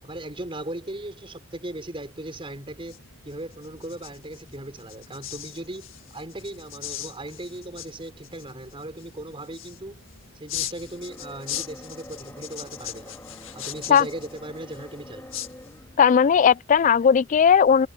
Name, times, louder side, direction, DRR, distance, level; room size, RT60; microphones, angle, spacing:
voice 1, 0.0-3.0 3.2-10.0 10.3-13.2 13.5-15.3, right 1 dB, 25° right, 4.5 m, -38 dB
sound 1, 2.5-16.1, left 12 dB, 75° left, 1.7 m, -40 dB
sound 2, 10.8-16.1, left 1 dB, 15° left, 2.0 m, -46 dB
voice 2, 16.0-17.9, left 7 dB, 40° left, 0.3 m, -17 dB
head